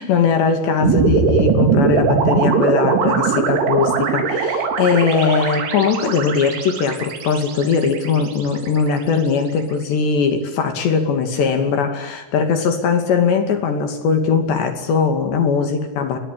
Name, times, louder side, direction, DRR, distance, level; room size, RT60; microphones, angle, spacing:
voice 1, 0.0-16.2, left 5 dB, 65° left, 7 dB, 4.6 m, -20 dB
sound 1, 0.8-9.1, right 5 dB, 75° right, 5.8 m, -20 dB
29.0 x 22.5 x 8.7 m, 1.0 s
omnidirectional pair, 5.5 m